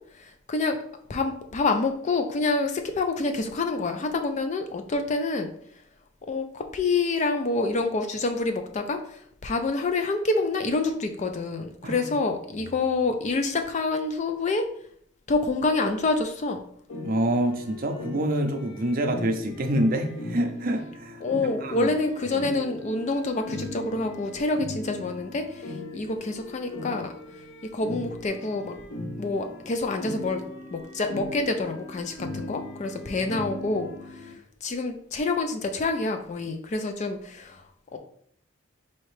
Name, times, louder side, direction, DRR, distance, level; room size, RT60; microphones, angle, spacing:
voice 1, 0.2-0.8 1.1-5.5 6.3-14.7 15.3-16.6 21.2-27.1 27.7-28.8 29.2-30.4 30.7-33.9 34.2-34.3 34.6-37.6 37.9-38.0, left 3 dB, 35° left, 6 dB, 0.3 m, -27 dB
sound 1, 16.9-34.3, left 1 dB, 70° left, 0.8 m, -39 dB
voice 2, 17.0-21.2 21.6-21.9 22.3-22.4, right 1 dB, 45° right, 4 dB, 0.5 m, -26 dB
4.2 x 2.8 x 3.1 m, 0.65 s
head